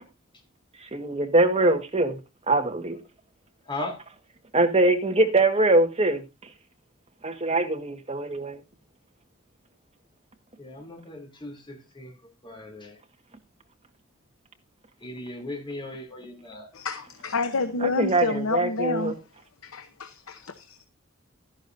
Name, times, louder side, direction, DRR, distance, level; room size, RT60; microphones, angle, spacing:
voice 1, 0.8-2.2 2.5-3.0 4.5-6.2 7.2-8.6 17.8-19.1, right 2 dB, 30° right, 1.6 m, -23 dB
voice 2, 3.6-4.0 10.6-12.1 12.4-13.0 15.0-16.6, left 2 dB, 25° left, 3.2 m, -37 dB
voice 3, 16.8-19.1 19.6-20.8, left 3 dB, 85° left, 0.9 m, -29 dB
12.5 x 11.0 x 2.7 m
head